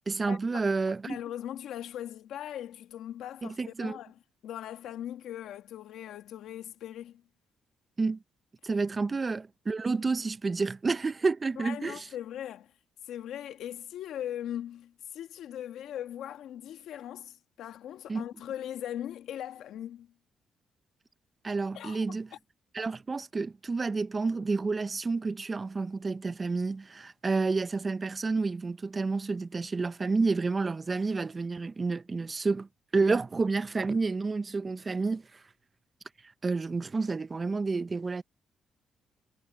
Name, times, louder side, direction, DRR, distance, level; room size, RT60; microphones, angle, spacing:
voice 1, 0.1-1.2 3.4-4.0 8.0-8.2 8.6-12.1 18.1-18.2 21.4-22.3 22.7-32.7 32.9-35.4 36.4-38.2, right 4 dB, 35° right, 0.8 m, -30 dB
voice 2, 1.1-7.2 11.6-12.7 13.0-20.1 21.7-22.2, left 11 dB, 80° left, 1.5 m, -40 dB
supercardioid pair, 70°, 0 cm